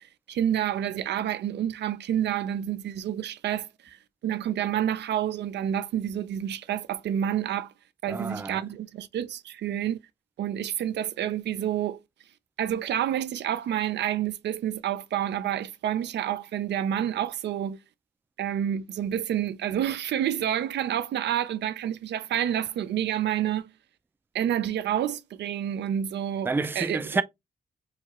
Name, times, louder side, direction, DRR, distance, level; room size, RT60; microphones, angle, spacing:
voice 1, 0.0-4.0 4.2-7.7 8.0-10.0 10.4-12.0 12.6-17.8 18.4-23.7 24.3-27.0, right 10 dB, 90° right, 0.4 m, -29 dB
voice 2, 8.1-8.6 26.5-27.2, right 3 dB, 10° right, 0.3 m, -28 dB
4.7 x 2.3 x 2.9 m
cardioid pair, 100°, 17 cm